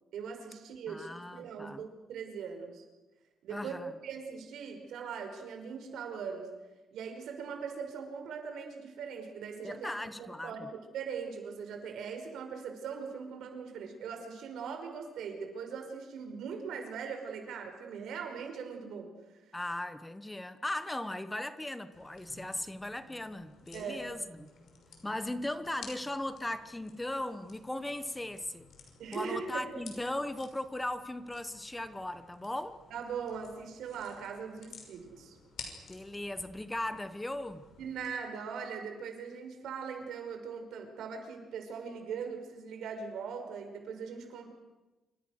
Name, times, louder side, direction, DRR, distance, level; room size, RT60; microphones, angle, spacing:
voice 1, 0.1-2.8 3.4-6.5 6.9-9.9 10.2-19.4 23.7-24.0 29.0-29.7 32.9-35.4 37.8-44.5, right 6 dB, 85° right, 5 dB, 5.4 m, -40 dB
voice 2, 0.9-1.8 3.5-3.9 9.6-10.7 19.5-24.5 25.0-28.7 29.1-32.8 35.9-37.6, left 1 dB, 10° left, 12 dB, 1.1 m, -38 dB
sound 1, 21.9-38.1, left 5 dB, 65° left, 6.1 m, -54 dB
27.5 x 25.5 x 6.6 m, 1.1 s
cardioid pair, 155°, 0 cm